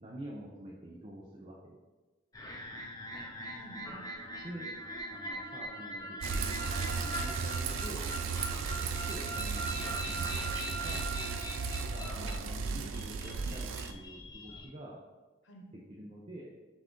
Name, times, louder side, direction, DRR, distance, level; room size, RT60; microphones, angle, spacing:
voice 1, 0.0-1.8 4.4-4.7 5.1-8.0 8.4-11.0 11.9-15.0 15.9-16.5, right 1 dB, 30° right, -3 dB, 0.5 m, -47 dB
sound 1, 2.3-14.7, equal, 20° left, 0.5 m, -41 dB
voice 2, 3.5-4.1 10.0-10.2 12.2-12.9 13.2-13.5 15.4-16.0, right 1 dB, 70° left, 1 dB, 0.8 m, -51 dB
Bicycle, 6.2-13.9, right 5 dB, 85° right, 0.4 m, -35 dB
5.9 x 2.4 x 3.7 m, 1.2 s
head